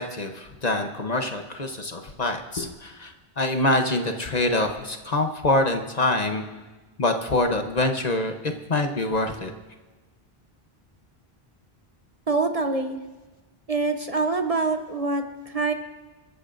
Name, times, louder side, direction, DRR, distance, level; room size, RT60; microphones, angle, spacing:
voice 1, 0.0-6.4 7.0-9.5, left 2 dB, 45° left, 5 dB, 0.9 m, -25 dB
voice 2, 12.3-13.0 13.7-15.7, right 3 dB, 40° right, 5 dB, 0.8 m, -25 dB
26.5 x 13.5 x 2.6 m, 1.2 s
omnidirectional pair, 1.1 m